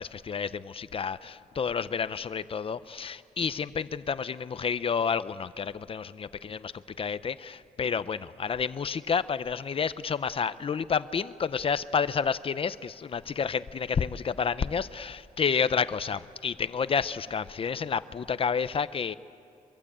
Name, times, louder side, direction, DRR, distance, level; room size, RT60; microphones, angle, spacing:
voice 1, 0.0-6.7 7.0-19.1, left 6 dB, 40° left, 14 dB, 0.6 m, -30 dB
24.0 x 23.5 x 8.6 m, 2.5 s
wide cardioid pair, 150°, 15 cm